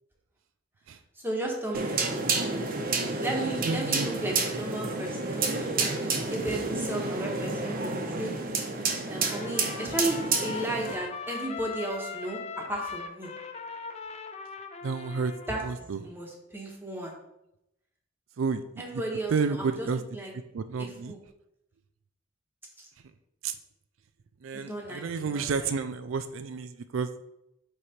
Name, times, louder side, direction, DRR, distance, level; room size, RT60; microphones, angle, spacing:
voice 1, 1.2-2.2 3.2-8.3 9.1-13.3 15.5-17.1 18.8-19.9 20.1-20.3 20.8-21.2 22.8-22.9 24.5-25.7, right 1 dB, 10° right, -1 dB, 1.3 m, -34 dB
sound 1, 1.7-10.9, right 3 dB, 45° right, 1.0 m, -30 dB
voice 2, 3.6-4.1 14.8-15.3 15.6-16.0 18.4-18.6 19.3-20.0 20.5-21.1 23.4-23.5 24.4-27.2, right 5 dB, 75° right, 10 dB, 0.4 m, -30 dB
Trumpet, 9.2-15.7, left 4 dB, 35° left, 0.6 m, -40 dB
8.9 x 3.3 x 4.3 m, 0.84 s
head